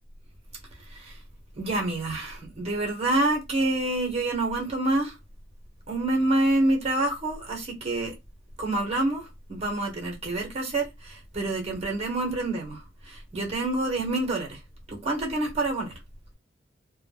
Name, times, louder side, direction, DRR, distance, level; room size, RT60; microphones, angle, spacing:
voice 1, 0.9-1.2 1.5-5.1 5.9-8.1 8.6-14.6 14.9-16.0, right 2 dB, 35° right, 0.8 m, -27 dB
2.1 x 2.0 x 3.1 m
head